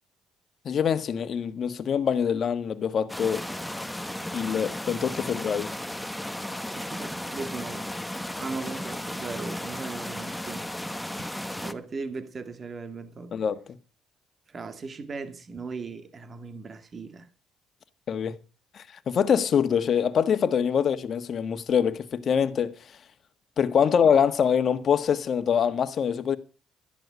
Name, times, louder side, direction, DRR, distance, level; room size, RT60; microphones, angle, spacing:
voice 1, 0.6-3.4 4.3-5.7 13.3-13.6 18.1-18.4 18.7-22.7 23.6-26.4, left 7 dB, 55° left, 1.5 m, -24 dB
sound 1, 3.1-11.7, left 1 dB, 5° left, 1.2 m, -35 dB
voice 2, 6.6-7.9 8.4-10.6 11.2-11.3 11.6-13.4 14.5-17.3, right 4 dB, 40° right, 2.2 m, -38 dB
13.5 x 11.0 x 5.2 m
supercardioid pair, 70°, 0 cm